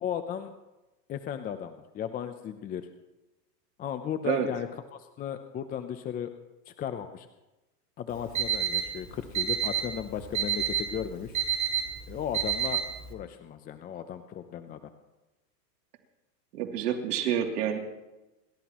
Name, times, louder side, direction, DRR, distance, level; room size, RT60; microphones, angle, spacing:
voice 1, 0.0-0.5 1.1-2.9 3.8-4.7 5.2-6.3 6.7-7.3 8.0-11.4 12.1-12.8 13.1-14.8, left 9 dB, 20° left, 9 dB, 0.6 m, -35 dB
Alarm, 8.1-13.1, right 9 dB, 35° right, 3.1 m, -30 dB
voice 2, 16.5-17.8, right 9 dB, 70° right, 2 dB, 3.0 m, -28 dB
28.5 x 13.5 x 3.0 m, 1.0 s
supercardioid pair, 135°, 49 cm